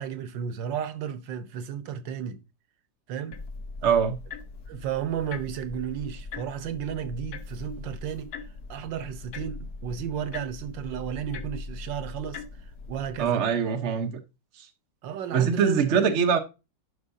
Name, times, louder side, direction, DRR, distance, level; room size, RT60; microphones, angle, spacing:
voice 1, 0.0-2.4 3.1-3.4 4.7-8.4 8.7-12.4 12.9-13.5 15.0-16.2, right 8 dB, 85° right, 1.5 m, -33 dB
sound 1, 3.3-13.2, left 3 dB, 60° left, 1.3 m, -40 dB
voice 2, 3.8-4.2 13.2-14.1 14.6-14.7 15.3-16.4, right 7 dB, 45° right, 1.1 m, -23 dB
11.0 x 5.8 x 2.7 m
omnidirectional pair, 2.0 m